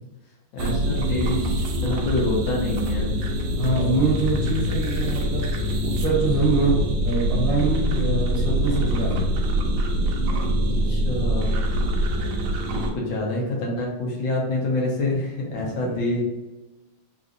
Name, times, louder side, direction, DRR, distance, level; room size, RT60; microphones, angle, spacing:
voice 1, 0.5-3.1 4.3-4.7 10.9-11.5 12.7-16.2, left 2 dB, 70° left, -2 dB, 1.5 m, -27 dB
sound 1, 0.6-12.9, equal, 75° right, 1.2 m, -24 dB
sound 2, 3.4-3.9 5.0-6.1 6.6-8.0 8.7-9.8 10.3-11.4, left 3 dB, 50° left, 1.9 m, -44 dB
voice 2, 3.5-6.8 7.0-9.2 15.6-15.9, right 3 dB, 55° right, -6 dB, 1.1 m, -24 dB
4.0 x 2.6 x 2.5 m, 1.1 s
omnidirectional pair, 2.2 m